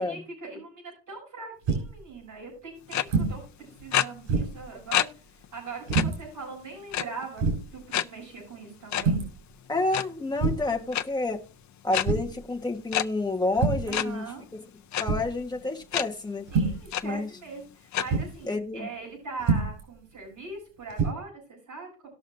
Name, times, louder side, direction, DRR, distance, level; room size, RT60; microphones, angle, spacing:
voice 1, 0.0-9.2 13.8-14.4 16.5-22.1, right 4 dB, 40° right, -2 dB, 6.9 m, -41 dB
sound 1, 1.7-2.0 3.1-3.4 3.8-3.9 4.3-4.7 5.9-6.2 6.9-7.0 7.4-7.7 9.0-9.4 10.4-10.8 12.0-12.4 13.5-14.0 15.0-15.4 16.5-16.9 18.1-18.3 19.4-19.8 20.9-21.1, right 4 dB, 90° right, 5.5 m, -26 dB
sound 2, 2.9-3.0 3.9-4.0 4.9-5.0 5.4-5.5 5.9-6.0 6.9-7.3 7.9-8.0 8.9-9.0 9.8-10.0 10.9-11.0 11.9-12.0 12.9-13.0 13.9-14.0 14.9-15.0 15.9-16.0 16.5-16.6 16.9-17.0 17.9-18.0, left 11 dB, 40° left, 0.4 m, -26 dB
voice 2, 9.7-11.4 11.8-14.2 15.0-16.4 17.0-17.3 18.4-18.9, left 2 dB, 10° left, 2 dB, 1.3 m, -29 dB
19.0 x 6.3 x 2.6 m, 0.34 s
cardioid pair, 165°, 47 cm